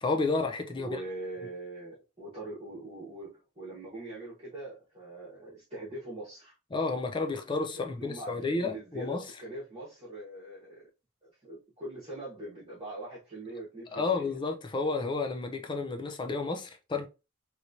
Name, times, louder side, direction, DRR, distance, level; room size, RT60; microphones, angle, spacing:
voice 1, 0.0-1.0 6.7-9.3 13.9-17.1, left 3 dB, 20° left, 0.4 m, -31 dB
voice 2, 0.7-6.5 7.7-10.9 11.2-14.3, right 2 dB, 30° right, 1.3 m, -42 dB
3.1 x 3.0 x 2.6 m
head